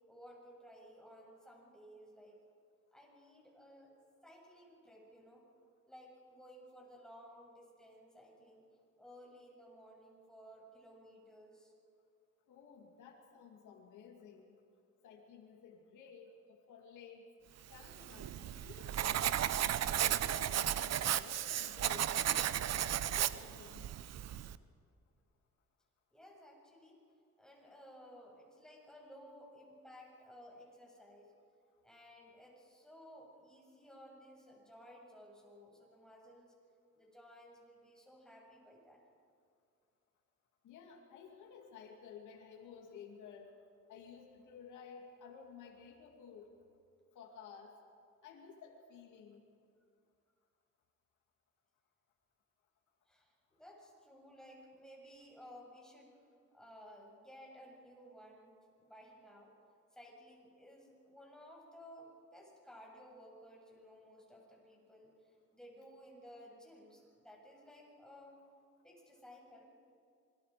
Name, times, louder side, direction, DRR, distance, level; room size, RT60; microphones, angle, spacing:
voice 1, 0.1-2.4 2.9-3.9 4.2-5.4 5.9-8.7 9.0-11.7 26.1-27.0 27.4-31.3 31.8-36.5 36.9-39.0 53.1-56.1 56.5-59.5 59.9-68.4 68.8-69.7, equal, ahead, -2 dB, 7.6 m, -57 dB
voice 2, 12.5-14.6 15.0-17.3 17.7-19.5 20.0-22.8 23.1-23.9 40.6-43.6 43.9-46.5 47.1-47.7 48.2-49.5, left 6 dB, 80° left, 0 dB, 2.7 m, -54 dB
Writing, 17.8-24.6, right 11 dB, 60° right, 0.8 m, -34 dB
28.0 x 22.0 x 5.2 m, 2.4 s
cardioid pair, 90°, 30 cm